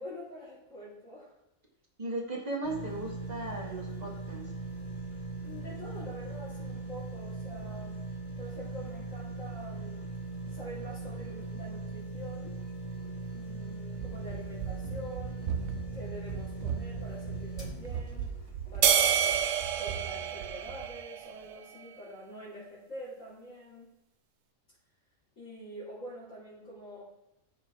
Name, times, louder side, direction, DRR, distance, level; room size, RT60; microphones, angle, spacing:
voice 1, 0.0-1.3 5.4-8.0 8.4-10.1 10.4-12.6 13.3-18.3 18.7-19.4 19.8-23.9 25.4-27.0, equal, 65° left, -11 dB, 3.8 m, -46 dB
voice 2, 2.0-4.4, right 2 dB, 30° right, -1 dB, 2.0 m, -36 dB
sound 1, 2.6-19.8 20.3-20.4, right 3 dB, 25° left, 1.5 m, -40 dB
Run, 13.9-21.0, right 7 dB, 90° right, 1.1 m, -39 dB
sound 2, 18.8-21.4, right 8 dB, 70° right, 1.0 m, -27 dB
14.0 x 5.2 x 3.9 m, 0.90 s
omnidirectional pair, 1.4 m